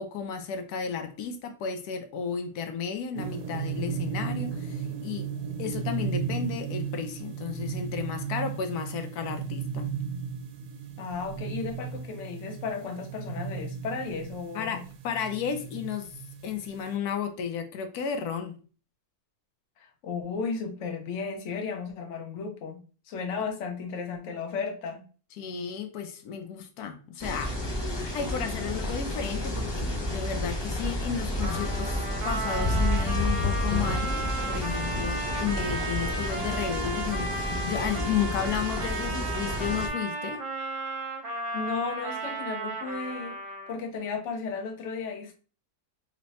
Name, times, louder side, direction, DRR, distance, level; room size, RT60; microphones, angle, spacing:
voice 1, 0.0-9.9 14.5-18.5 23.3-23.4 25.4-27.6 27.9-32.0 32.2-40.4, left 7 dB, 85° left, 1.1 m, -33 dB
sound 1, 3.2-17.0, right 7 dB, 80° right, 1.1 m, -35 dB
voice 2, 11.0-14.8 19.8-22.8 23.1-25.0 41.5-43.4 43.7-45.3, left 5 dB, 60° left, 1.0 m, -34 dB
sound 2, 27.2-39.9, left 1 dB, 40° left, 0.3 m, -30 dB
Trumpet, 31.4-43.9, right 2 dB, 55° right, 1.2 m, -34 dB
3.2 x 2.2 x 4.0 m
omnidirectional pair, 1.6 m